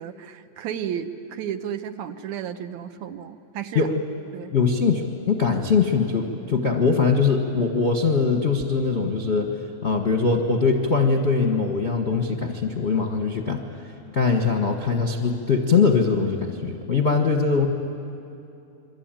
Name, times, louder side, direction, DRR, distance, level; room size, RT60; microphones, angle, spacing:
voice 1, 0.0-3.9 4.3-4.6, right 9 dB, 75° right, 8 dB, 2.2 m, -33 dB
voice 2, 4.5-9.5 9.8-13.6 14.1-17.7, left 5 dB, 45° left, 3 dB, 0.8 m, -22 dB
27.5 x 23.5 x 9.0 m, 2.7 s
omnidirectional pair, 3.5 m